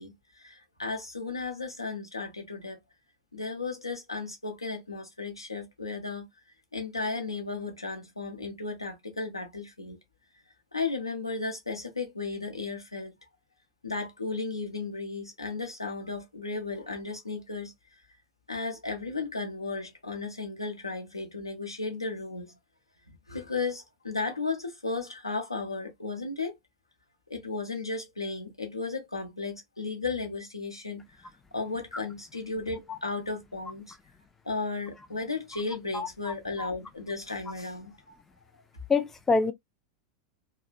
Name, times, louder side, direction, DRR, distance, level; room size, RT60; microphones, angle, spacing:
voice 1, 0.0-2.8 3.3-6.3 6.7-10.0 10.7-13.1 13.8-17.7 18.5-22.6 23.3-26.5 27.3-31.1 31.5-34.0 34.4-38.2, left 3 dB, 85° left, 0.8 m, -35 dB
voice 2, 38.9-39.5, left 4 dB, 15° left, 0.4 m, -25 dB
3.1 x 2.0 x 2.4 m
figure-of-eight pair, 90°, 2 cm